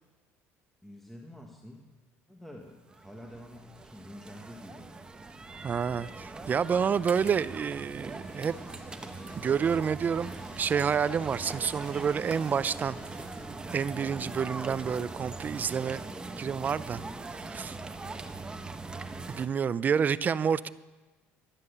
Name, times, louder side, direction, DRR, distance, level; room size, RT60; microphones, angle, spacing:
voice 1, 0.8-1.8 2.3-4.9, left 1 dB, 5° left, 0 dB, 1.3 m, -48 dB
sound 1, 2.9-19.5, right 3 dB, 15° right, 0.9 m, -41 dB
voice 2, 5.6-8.5 9.4-10.3 10.6-13.0 13.7-16.0 16.4-17.0 17.3-17.8 19.3-20.7, right 7 dB, 30° right, 17 dB, 0.4 m, -28 dB
sound 2, 8.1-13.5, left 1 dB, 20° left, 3.3 m, -53 dB
11.5 x 9.7 x 6.7 m, 1.2 s
cardioid pair, 115°, 6 cm